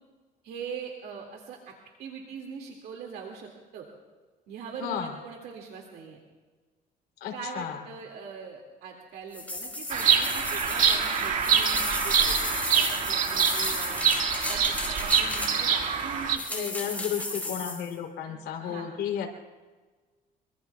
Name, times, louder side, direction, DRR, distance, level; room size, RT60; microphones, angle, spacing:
voice 1, 0.4-1.7 2.0-3.8 4.5-6.2 7.3-17.5 18.3-18.9, right 6 dB, 75° right, 0 dB, 2.2 m, -42 dB
voice 2, 4.8-5.1 7.2-7.8 16.5-19.3, left 9 dB, 75° left, 2 dB, 3.2 m, -33 dB
sound 1, 9.3-15.8 16.4-17.9, left 2 dB, 10° left, 5.0 m, -34 dB
Bird vocalization bird call bird song, 9.9-16.4, right 7 dB, 50° right, 1.8 m, -25 dB
25.0 x 24.0 x 2.3 m, 1.4 s
cardioid pair, 110°, 17 cm